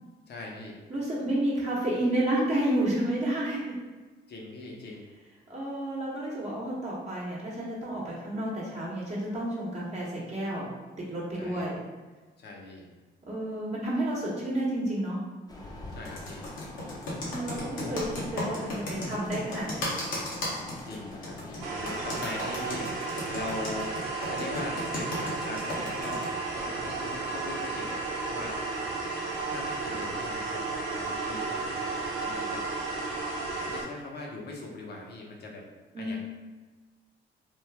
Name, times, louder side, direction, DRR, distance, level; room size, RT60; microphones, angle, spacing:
voice 1, 0.3-0.8 4.3-5.0 11.3-11.7 12.4-12.9 15.9-16.5 17.8-18.0 20.8-28.0 28.3-28.6 29.5-30.6 30.9-32.7 33.5-35.6 36.0-36.2, left 2 dB, 55° left, -1 dB, 0.8 m, -41 dB
voice 2, 0.9-3.8 5.5-10.7 11.0-11.8 13.3-15.2 17.2-18.0 18.3-19.9 35.9-36.2, right 1 dB, 35° right, -6 dB, 1.0 m, -30 dB
sound 1, 15.5-22.7, left 2 dB, 20° left, 0.7 m, -44 dB
Computer keyboard, 16.0-26.3, left 1 dB, 85° left, 1.0 m, -35 dB
sound 2, 21.6-33.8, right 3 dB, 80° right, 0.8 m, -33 dB
3.1 x 2.2 x 3.3 m, 1.3 s
cardioid pair, 90°, 20 cm